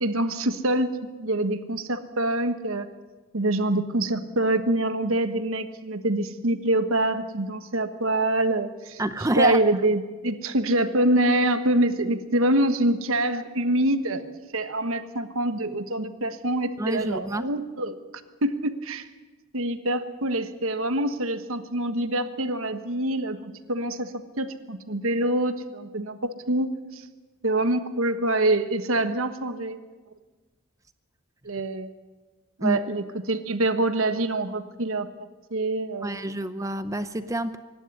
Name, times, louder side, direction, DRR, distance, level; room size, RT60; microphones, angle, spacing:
voice 1, 0.0-2.9 3.3-9.0 9.4-18.0 18.4-19.1 19.5-26.2 26.5-27.0 27.4-29.8 31.4-31.9 32.6-36.3, right 1 dB, 75° right, 9 dB, 1.3 m, -25 dB
voice 2, 9.0-9.6 16.8-17.5 32.6-32.8 36.0-37.6, right 1 dB, 15° right, 10 dB, 0.6 m, -27 dB
24.5 x 12.0 x 9.8 m, 1.3 s
head